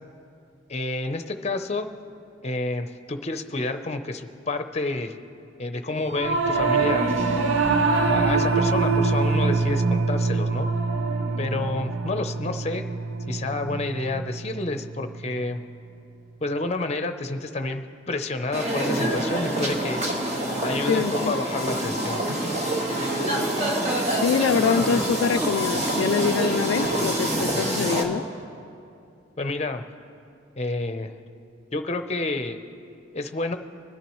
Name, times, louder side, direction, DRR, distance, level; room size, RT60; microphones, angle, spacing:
voice 1, 0.7-1.9 2.4-5.1 5.6-7.1 8.1-10.7 11.4-12.9 13.3-15.6 16.4-20.0 20.6-22.2 29.4-29.8 30.6-31.1 31.7-32.6 33.1-33.6, left 2 dB, 35° left, 8 dB, 0.6 m, -29 dB
Singing / Musical instrument, 6.1-15.6, right 3 dB, 80° right, 0.9 m, -24 dB
sound 1, 18.5-28.0, right 1 dB, 35° right, 1.5 m, -26 dB
voice 2, 20.9-21.3 24.1-28.3, left 6 dB, 75° left, 8 dB, 0.3 m, -24 dB
25.5 x 10.0 x 3.1 m, 2.5 s
head